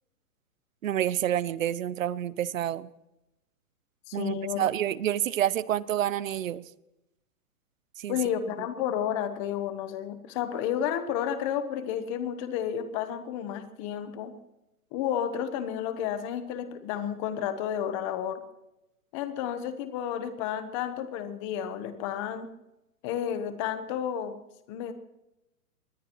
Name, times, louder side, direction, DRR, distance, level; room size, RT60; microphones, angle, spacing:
voice 1, 0.8-2.9 4.1-6.6 8.0-8.2, right 11 dB, 60° right, 19 dB, 0.8 m, -28 dB
voice 2, 4.1-4.7 8.1-14.3 14.9-18.4 19.1-22.5 23.0-24.3 24.7-24.9, left 9 dB, 20° left, 10 dB, 1.0 m, -31 dB
23.5 x 20.0 x 3.1 m, 0.91 s
hypercardioid pair, 165°, 46 cm